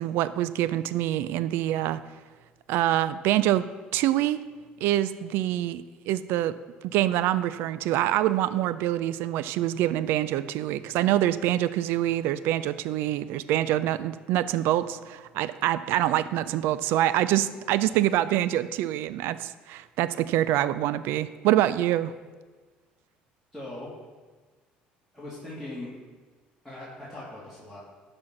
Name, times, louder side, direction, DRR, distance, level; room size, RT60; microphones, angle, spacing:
voice 1, 0.0-2.0 2.7-3.7 3.9-4.4 4.8-6.5 6.9-22.1, right 13 dB, 75° right, 15 dB, 0.4 m, -25 dB
voice 2, 23.5-23.9 25.1-25.9 26.6-27.8, left 1 dB, ahead, -8 dB, 2.9 m, -40 dB
12.0 x 4.4 x 6.0 m, 1.4 s
supercardioid pair, 80°, 4 cm